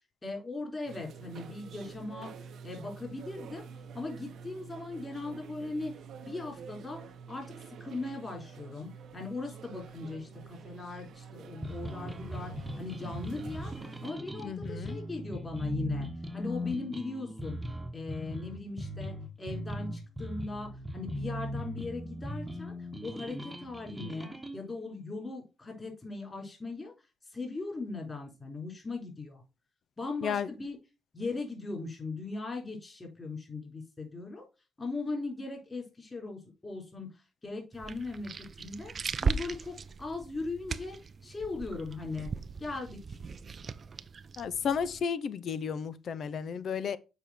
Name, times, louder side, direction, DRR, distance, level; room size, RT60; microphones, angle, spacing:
voice 1, 0.2-2.3 2.6-3.7 3.9-5.9 6.2-7.0 7.3-17.6 17.9-22.7 23.0-26.9 27.3-29.4 30.0-30.8 31.1-34.4 34.8-37.1 37.4-38.3 38.6-38.9 39.2-41.0 41.2-42.3 42.6-43.2, left 3 dB, 25° left, 4.2 m, -39 dB
sound 1, 0.9-14.1, right 6 dB, 70° right, 0.9 m, -47 dB
sound 2, 11.6-24.6, equal, 10° right, 1.3 m, -39 dB
voice 2, 14.4-15.0 30.2-30.5 44.4-47.0, left 7 dB, 60° left, 0.7 m, -33 dB
sound 3, 37.7-45.0, right 5 dB, 45° right, 0.5 m, -38 dB
7.1 x 5.2 x 4.4 m
cardioid pair, 90°, 0 cm